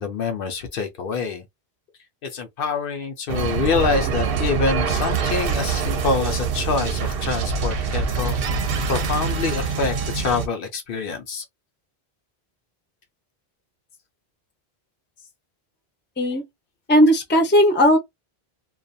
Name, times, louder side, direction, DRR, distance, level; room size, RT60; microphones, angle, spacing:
voice 1, 0.0-1.4 2.3-8.4 8.9-11.4, left 4 dB, 65° left, 0.7 m, -26 dB
sound 1, 3.3-10.5, right 5 dB, 70° right, 0.8 m, -24 dB
voice 2, 16.9-18.0, equal, 15° left, 0.5 m, -16 dB
2.3 x 2.3 x 2.6 m
omnidirectional pair, 1.0 m